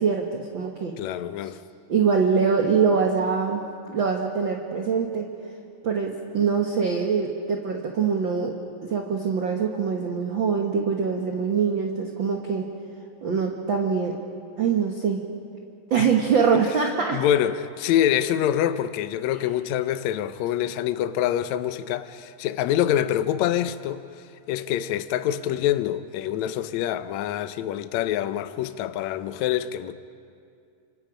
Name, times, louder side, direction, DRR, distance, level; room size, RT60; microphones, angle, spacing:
voice 1, 0.0-0.9 1.4-1.5 1.9-3.6 3.9-5.3 5.8-8.5 8.8-12.6 13.2-14.1 14.6-15.2 15.9-17.2, right 6 dB, 60° right, 1.3 m, -23 dB
voice 2, 1.0-1.6 16.0-16.1 17.1-24.0 24.5-29.9, left 11 dB, 80° left, 1.6 m, -25 dB
29.0 x 26.5 x 5.1 m
omnidirectional pair, 4.1 m